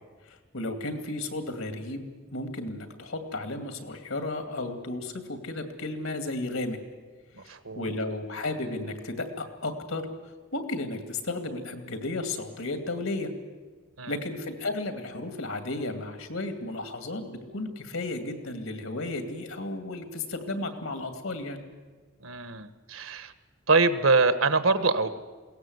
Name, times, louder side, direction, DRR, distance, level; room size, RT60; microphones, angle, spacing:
voice 1, 0.3-6.8 7.4-10.1 10.5-13.3 14.1-21.6, left 2 dB, 80° left, 6 dB, 2.5 m, -34 dB
voice 2, 7.4-7.9 14.0-14.1 22.2-23.3 23.7-25.1, right 3 dB, 80° right, 11 dB, 1.4 m, -24 dB
21.5 x 18.0 x 8.0 m, 1.4 s
head